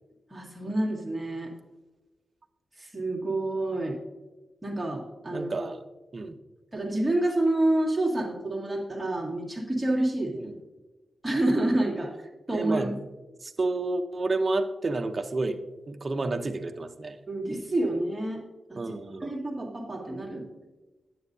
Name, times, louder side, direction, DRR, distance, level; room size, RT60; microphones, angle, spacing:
voice 1, 0.3-1.5 2.8-4.0 4.6-5.5 6.7-10.5 11.2-12.9 17.3-18.4 18.7-18.8 19.2-20.5, right 1 dB, 10° right, -3 dB, 1.9 m, -28 dB
voice 2, 5.3-5.8 6.1-6.4 10.4-10.6 12.5-13.0 13.4-15.6 15.9-17.2 18.8-19.3, right 3 dB, 35° right, 7 dB, 0.6 m, -30 dB
10.5 x 9.3 x 2.7 m, 1.2 s
wide cardioid pair, 140°, 0 cm